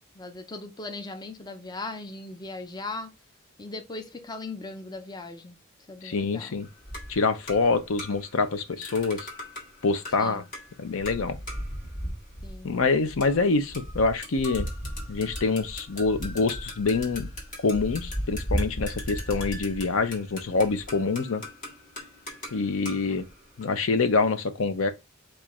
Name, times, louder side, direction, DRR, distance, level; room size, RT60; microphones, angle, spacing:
voice 1, 0.1-3.1 3.6-5.6 5.9-6.6 10.2-10.4 12.4-12.7, left 2 dB, 20° left, 0.5 m, -38 dB
voice 2, 6.0-6.7 7.1-9.3 9.8-10.4 10.8-11.4 12.6-14.7 15.1-17.3 17.6-21.4 22.5-23.2 23.6-24.9, left 4 dB, 70° left, 0.6 m, -26 dB
sound 1, 6.6-8.4 8.8-23.8, equal, 40° left, 1.5 m, -37 dB
4.9 x 2.5 x 4.1 m
head